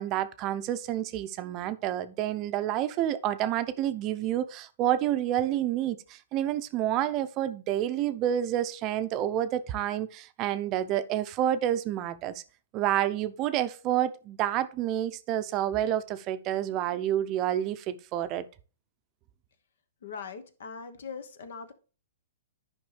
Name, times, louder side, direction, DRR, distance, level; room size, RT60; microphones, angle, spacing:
voice 1, 0.0-12.4 12.7-18.4, right 11 dB, 35° right, 0.6 m, -29 dB
voice 2, 20.0-21.7, left 5 dB, 70° left, 1.1 m, -41 dB
10.5 x 5.3 x 3.3 m
hypercardioid pair, 125°, 0 cm